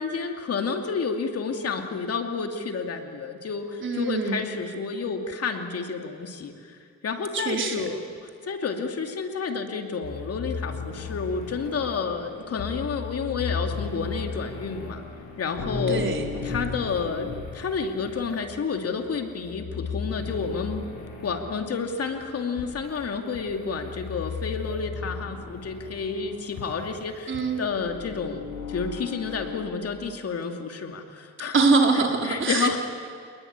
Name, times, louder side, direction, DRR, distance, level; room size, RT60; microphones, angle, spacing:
voice 1, 0.0-15.0 15.4-16.0 16.4-20.8 21.2-31.5 32.2-32.8, left 5 dB, 50° left, 4 dB, 2.7 m, -30 dB
voice 2, 3.8-4.4 7.3-7.8 15.9-16.3 27.3-27.6 31.5-32.8, right 3 dB, 40° right, 2 dB, 4.4 m, -23 dB
sound 1, 10.0-29.6, left 5 dB, 70° left, 6.8 m, -36 dB
27.5 x 20.5 x 9.7 m, 2.2 s
cardioid pair, 90°, 30 cm